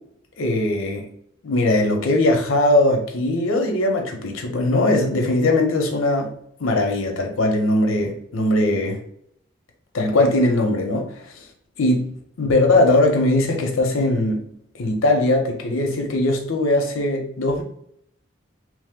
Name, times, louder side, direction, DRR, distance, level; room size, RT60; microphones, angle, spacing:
voice 1, 0.4-1.0 1.4-6.3 6.6-9.0 9.9-11.5 11.8-14.4 14.8-17.6, left 2 dB, 85° left, 3 dB, 0.7 m, -20 dB
3.0 x 2.0 x 3.5 m, 0.67 s
head